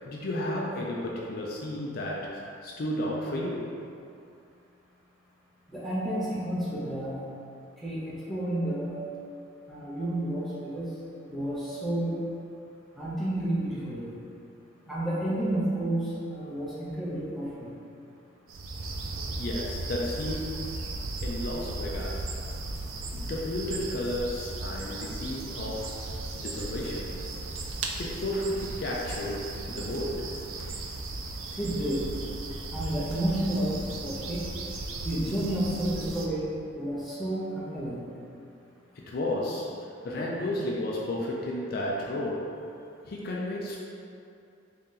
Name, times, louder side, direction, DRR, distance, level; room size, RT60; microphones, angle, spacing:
voice 1, 0.0-3.7 19.4-20.8 21.2-22.3 23.1-25.9 26.3-27.1 28.0-30.3 39.1-39.7 40.0-42.5 43.1-43.8, left 1 dB, 50° left, -4 dB, 0.4 m, -32 dB
voice 2, 5.7-7.2 7.8-9.0 9.7-10.9 11.3-12.1 12.9-14.1 14.9-17.7 31.6-32.1 32.7-34.5 35.0-38.0, right 1 dB, ahead, -9 dB, 0.7 m, -31 dB
sound 1, 18.5-36.3, right 2 dB, 80° right, 0.4 m, -36 dB
3.7 x 2.8 x 3.7 m, 2.6 s
head